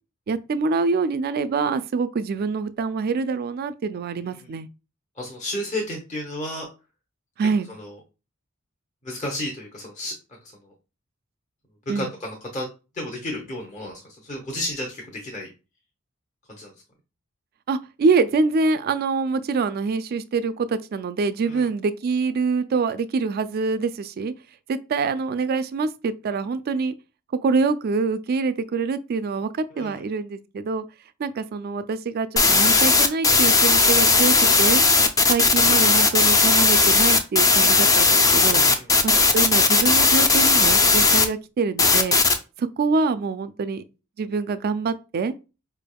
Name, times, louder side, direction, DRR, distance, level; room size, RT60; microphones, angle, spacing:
voice 1, 0.3-4.7 7.4-7.7 11.9-12.1 17.7-24.3 24.7-26.9 27.4-30.8 31.2-34.8 35.3-38.6 39.0-42.2 42.6-43.8 44.2-45.3, right 4 dB, 45° right, 0.3 m, -25 dB
voice 2, 5.2-6.7 7.7-7.9 9.0-10.1 10.6-10.7 11.9-12.7 12.9-15.5 16.5-16.7 21.4-21.7 29.7-30.0 38.5-38.9, left 1 dB, 35° left, 0.8 m, -32 dB
sound 1, 32.4-41.2 41.8-42.4, left 4 dB, 15° left, 0.4 m, -17 dB
4.7 x 3.4 x 2.2 m
head